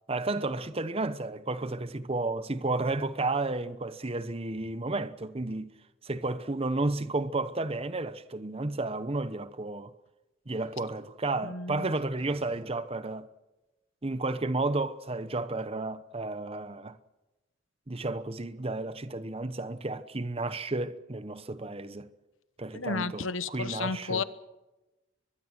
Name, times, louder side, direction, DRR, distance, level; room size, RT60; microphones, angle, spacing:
voice 1, 0.1-5.7 6.0-9.9 10.5-13.3 14.0-17.0 17.9-22.1 22.6-24.2, right 2 dB, 30° right, 0.9 m, -32 dB
voice 2, 11.4-11.9 22.7-24.2, left 4 dB, 75° left, 1.1 m, -32 dB
23.5 x 22.0 x 6.1 m
head